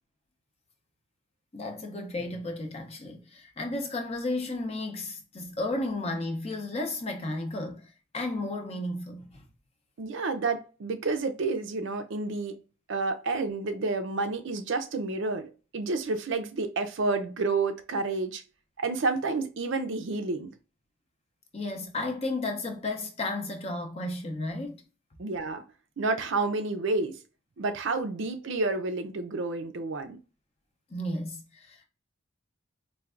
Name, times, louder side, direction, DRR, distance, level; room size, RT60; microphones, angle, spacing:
voice 1, 1.5-9.4 21.5-24.8 30.9-31.8, left 2 dB, 30° left, 0.5 m, -33 dB
voice 2, 10.0-12.6 12.9-18.4 18.8-20.5 25.2-25.6 26.0-27.2 27.6-30.2, right 3 dB, 60° right, 0.5 m, -30 dB
4.4 x 2.2 x 2.4 m
head